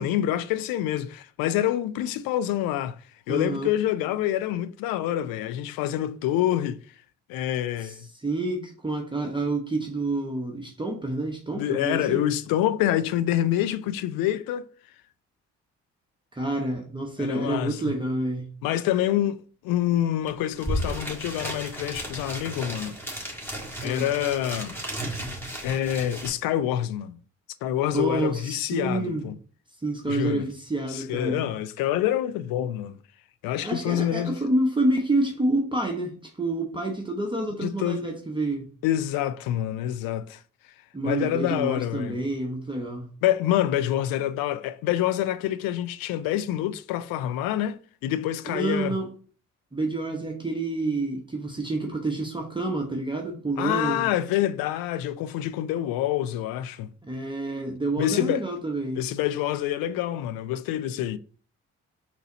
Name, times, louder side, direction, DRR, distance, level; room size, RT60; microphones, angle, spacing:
voice 1, 0.0-3.0 3.3-6.8 7.3-8.1 11.5-14.7 17.2-17.9 18.6-19.4 19.6-23.0 23.8-24.8 25.6-27.2 27.6-29.3 30.1-30.5 30.9-33.0 33.4-34.4 37.6-38.0 38.8-40.4 41.0-42.2 43.2-49.0 53.6-56.9 58.0-58.5 59.0-61.2, left 12 dB, 65° left, 0.5 m, -26 dB
voice 2, 3.3-3.7 7.8-12.3 16.3-18.5 23.8-24.1 27.9-29.3 29.8-31.5 33.6-38.7 40.9-43.1 48.5-49.1 49.7-54.1 57.0-59.0, right 2 dB, 15° right, 0.9 m, -28 dB
sound 1, 20.3-20.4 20.5-26.3, right 1 dB, 5° left, 1.6 m, -34 dB
4.0 x 2.8 x 3.9 m
hypercardioid pair, 45°, 38 cm